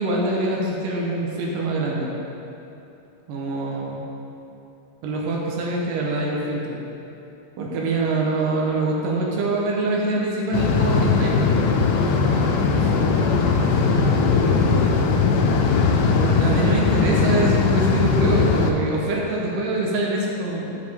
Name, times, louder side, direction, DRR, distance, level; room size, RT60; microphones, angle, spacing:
voice 1, 0.0-2.2 3.3-4.1 5.0-6.8 7.6-11.4 16.1-20.9, right 2 dB, 80° right, -2 dB, 2.5 m, -24 dB
sound 1, 10.5-18.7, left 4 dB, 80° left, 2.1 m, -19 dB
voice 2, 12.6-15.0, left 1 dB, 55° left, -8 dB, 2.3 m, -35 dB
11.5 x 5.2 x 3.4 m, 2.9 s
omnidirectional pair, 3.8 m